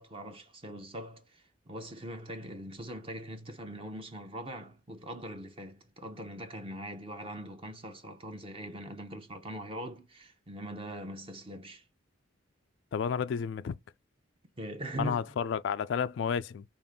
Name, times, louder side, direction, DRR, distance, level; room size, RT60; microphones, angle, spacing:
voice 1, 0.0-11.8 14.6-15.3, right 1 dB, 30° right, 0.7 m, -42 dB
voice 2, 12.9-13.8 15.0-16.6, left 7 dB, 65° left, 0.3 m, -31 dB
5.2 x 2.5 x 3.5 m
head